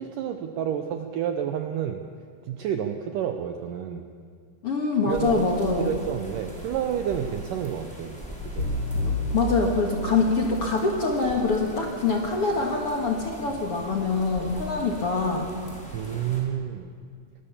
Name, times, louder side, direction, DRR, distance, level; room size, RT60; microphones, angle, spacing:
voice 1, 0.0-2.0 2.5-4.1 5.1-5.4 5.8-8.2 8.5-8.7 15.9-16.9, right 9 dB, 75° right, 6 dB, 2.0 m, -30 dB
voice 2, 4.6-5.9 9.0-15.5, left 3 dB, 50° left, 1 dB, 1.9 m, -25 dB
sound 1, 5.1-16.4, equal, ahead, 4.7 m, -41 dB
sound 2, 8.6-10.8, left 1 dB, 25° left, 4.8 m, -30 dB
24.0 x 19.0 x 7.3 m, 2.1 s
omnidirectional pair, 4.8 m